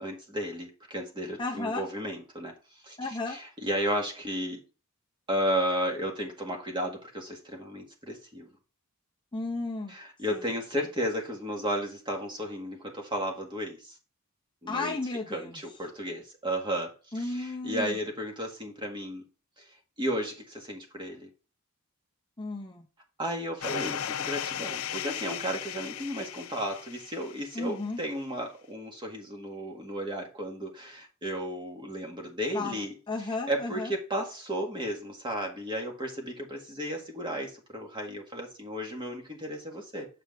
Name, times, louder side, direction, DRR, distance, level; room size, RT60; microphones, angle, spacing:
voice 1, 0.0-2.5 2.8-3.0 3.3-4.6 5.3-8.5 9.9-13.9 14.6-14.9 15.3-19.2 19.6-19.7 20.0-21.3 23.2-32.9 33.5-40.1, equal, 20° right, 1 dB, 1.8 m, -33 dB
voice 2, 1.4-1.9 3.0-3.4 9.3-10.0 10.3-10.4 14.7-15.6 17.1-18.0 22.4-22.9 27.5-28.0 32.5-33.9, left 3 dB, 20° left, 1 dB, 0.7 m, -34 dB
sound 1, 23.6-27.6, left 10 dB, 70° left, 0.4 m, -36 dB
7.8 x 4.9 x 3.4 m, 0.33 s
head